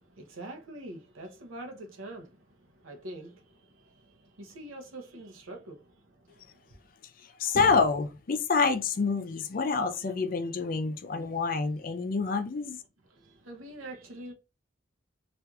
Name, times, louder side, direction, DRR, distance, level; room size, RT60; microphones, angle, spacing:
voice 1, 0.0-6.8 13.1-14.3, right 1 dB, 85° right, 0.8 m, -45 dB
voice 2, 7.2-12.8, left 4 dB, 45° left, 0.4 m, -27 dB
4.3 x 2.5 x 2.3 m
head